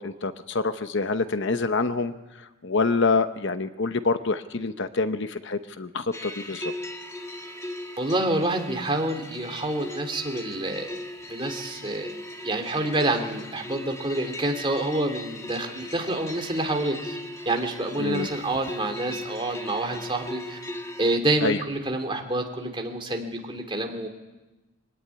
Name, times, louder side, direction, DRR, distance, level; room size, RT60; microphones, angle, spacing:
voice 1, 0.0-2.1 2.6-6.7 18.0-18.3 21.4-21.6, left 3 dB, 55° left, 10 dB, 0.9 m, -26 dB
sound 1, 6.1-21.2, left 1 dB, 15° left, 1.5 m, -38 dB
voice 2, 8.0-11.0 11.3-12.1 12.4-17.2 17.4-20.6 21.0-24.1, right 1 dB, 20° right, 3 dB, 2.8 m, -27 dB
23.5 x 17.5 x 9.7 m, 1.1 s
head